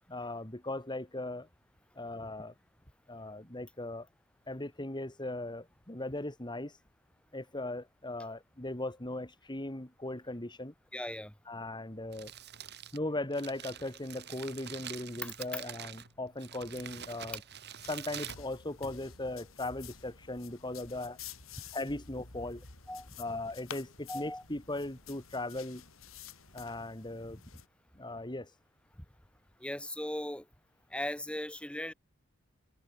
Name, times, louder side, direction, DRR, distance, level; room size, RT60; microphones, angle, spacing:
voice 1, 0.1-1.5 2.0-2.5 3.1-4.1 4.5-6.8 7.3-10.7 11.5-12.3 12.9-17.4 17.9-21.2 21.7-22.6 23.2-25.8 26.5-27.4 27.9-28.5, left 2 dB, 20° left, 2.8 m, -38 dB
voice 2, 10.9-11.3 15.2-15.3 22.9-23.1 24.1-24.4 29.6-30.4 30.9-31.9, left 1 dB, 5° left, 1.6 m, -38 dB
Crumpling crinkling, 11.9-19.2, right 9 dB, 55° right, 4.4 m, -46 dB
sound 1, 17.8-27.7, left 7 dB, 85° left, 4.1 m, -50 dB
head